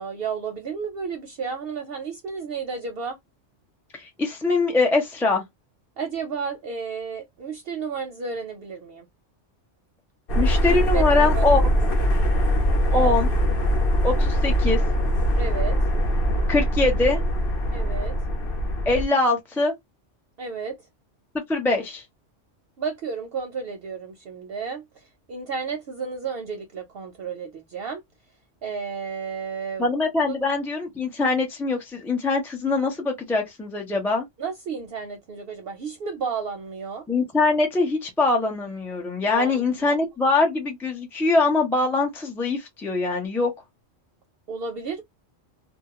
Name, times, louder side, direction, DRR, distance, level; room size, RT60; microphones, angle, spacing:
voice 1, 0.0-3.2 6.0-9.1 10.7-11.7 12.9-13.2 15.4-15.8 17.7-18.1 20.4-20.8 22.8-28.0 28.6-29.9 30.2-30.4 34.4-37.1 39.3-40.0 44.5-45.0, right 5 dB, 65° right, 0.7 m, -32 dB
voice 2, 3.9-5.4 10.4-11.6 12.9-13.3 14.0-14.8 16.5-17.2 18.9-19.7 21.5-22.0 29.8-34.3 37.1-43.5, left 3 dB, 5° left, 0.4 m, -23 dB
sound 1, 10.3-19.0, equal, 55° left, 0.8 m, -22 dB
2.3 x 2.1 x 2.8 m
omnidirectional pair, 1.3 m